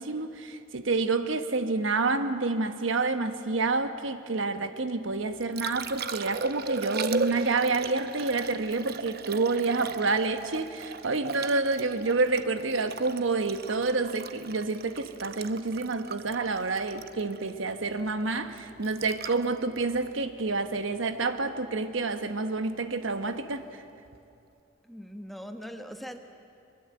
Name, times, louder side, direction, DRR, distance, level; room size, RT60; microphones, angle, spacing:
voice 1, 0.0-23.8, right 3 dB, 75° right, 1.2 m, -28 dB
Liquid, 5.1-21.2 24.1-24.2, right 4 dB, 50° right, 0.8 m, -37 dB
voice 2, 24.8-26.2, equal, ahead, 1.1 m, -41 dB
23.0 x 22.0 x 7.8 m
head